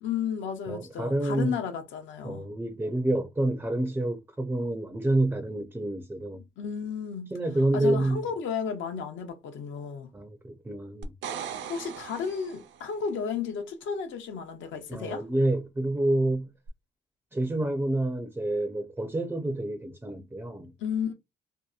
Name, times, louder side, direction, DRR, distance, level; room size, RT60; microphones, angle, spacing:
voice 1, 0.0-2.5 6.6-7.3 7.7-10.1 11.7-15.2 20.8-21.1, left 7 dB, 75° left, 0.6 m, -33 dB
voice 2, 0.7-1.6 2.2-6.4 7.3-8.2 10.1-11.1 14.9-16.5 17.3-20.7, right 1 dB, 10° right, 0.4 m, -28 dB
sound 1, 11.0-12.9 16.7-16.8, right 7 dB, 70° right, 0.5 m, -39 dB
2.7 x 2.1 x 2.3 m
cardioid pair, 90°, 20 cm